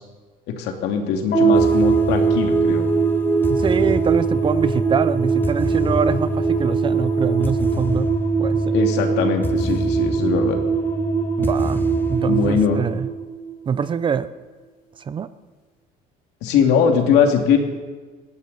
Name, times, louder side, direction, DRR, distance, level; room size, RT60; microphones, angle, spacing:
voice 1, 0.5-2.9 8.7-10.6 12.3-12.9 16.4-17.6, left 7 dB, 75° left, 4 dB, 2.5 m, -21 dB
sound 1, 1.3-13.8, right 6 dB, 55° left, 5.4 m, -22 dB
sound 2, 1.5-13.1, left 1 dB, 10° left, 0.9 m, -26 dB
voice 2, 3.5-8.1 8.4-8.7 11.4-11.8 12.1-13.1 13.7-14.3 15.1-15.3, right 7 dB, 30° right, 14 dB, 0.6 m, -24 dB
20.0 x 15.5 x 4.2 m, 1.4 s
cardioid pair, 140°, 18 cm